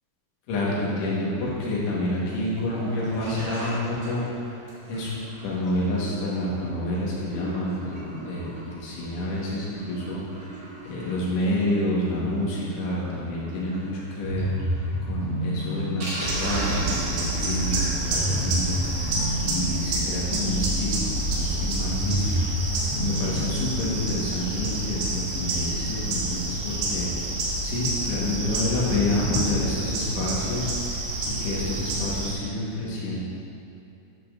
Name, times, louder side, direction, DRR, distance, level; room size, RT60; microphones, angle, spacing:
voice 1, 0.5-4.5 4.9-5.2 5.4-10.5 10.8-14.5 15.0-18.8 19.1-22.4 22.7-27.1 27.6-33.2, left 1 dB, 75° left, -6 dB, 3.8 m, -28 dB
Sink (filling or washing), 2.5-20.6 20.9-21.0 21.2-21.3 21.7-21.8, right 1 dB, 55° right, 2.1 m, -39 dB
sound 1, 14.2-24.0, equal, 55° left, 1.9 m, -29 dB
sound 2, 16.2-32.3, right 2 dB, 80° right, 3.6 m, -29 dB
11.0 x 6.7 x 2.6 m, 2.8 s
omnidirectional pair, 5.7 m